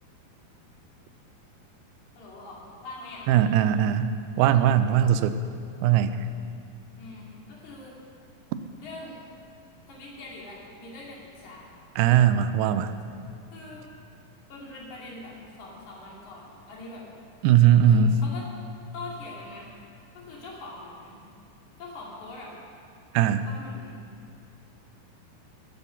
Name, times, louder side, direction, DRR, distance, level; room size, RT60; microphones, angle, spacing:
voice 1, 2.2-3.5 7.0-8.0 8.8-9.2 9.9-11.7 13.5-13.8 14.5-17.0 17.8-18.5 18.9-19.7 20.2-21.2 21.8-22.5 23.5-24.0, left 2 dB, 55° left, -4 dB, 3.5 m, -43 dB
voice 2, 3.3-5.4 5.8-6.2 12.0-12.9 17.4-18.2 23.1-23.4, right 9 dB, 85° right, 11 dB, 2.5 m, -20 dB
15.0 x 7.0 x 6.9 m, 2.5 s
omnidirectional pair, 4.5 m